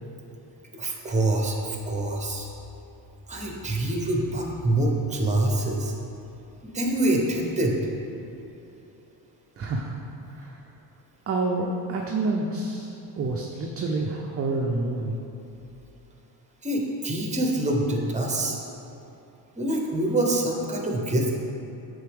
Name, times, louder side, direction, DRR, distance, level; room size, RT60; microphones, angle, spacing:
voice 1, 0.8-2.5 3.3-5.9 6.7-7.8 16.6-18.6 19.6-21.3, right 1 dB, 15° right, 1 dB, 0.8 m, -25 dB
voice 2, 9.6-10.0 10.4-10.5 11.3-15.2, right 2 dB, 35° right, 0 dB, 0.5 m, -28 dB
8.0 x 3.9 x 3.4 m, 2.9 s
cardioid pair, 105°, 44 cm